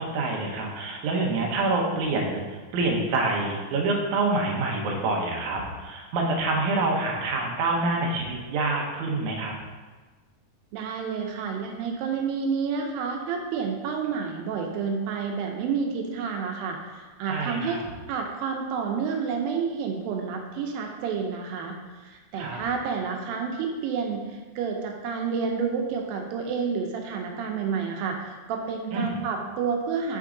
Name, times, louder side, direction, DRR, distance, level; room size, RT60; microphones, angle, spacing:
voice 1, 0.0-9.5 17.3-17.8 22.3-22.6 28.9-29.2, right 2 dB, 70° right, -1 dB, 2.0 m, -27 dB
voice 2, 10.7-17.8 18.1-30.2, right 5 dB, 85° right, 2 dB, 2.4 m, -29 dB
6.0 x 4.6 x 3.7 m, 1.3 s
omnidirectional pair, 4.1 m